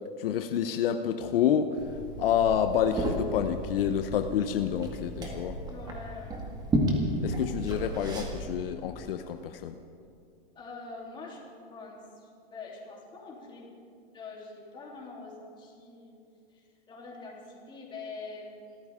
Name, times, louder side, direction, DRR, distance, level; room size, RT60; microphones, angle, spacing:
voice 1, 0.2-1.8 2.2-5.6 7.2-9.7, left 9 dB, 70° left, 7 dB, 0.9 m, -28 dB
Liquid, 1.8-8.5, right 1 dB, 15° right, 1.9 m, -33 dB
voice 2, 5.6-6.4 10.5-11.4 11.7-13.8 14.1-16.1 16.5-18.8, left 3 dB, 15° left, -3 dB, 3.3 m, -44 dB
26.5 x 14.0 x 3.7 m, 2.4 s
supercardioid pair, 150°, 30 cm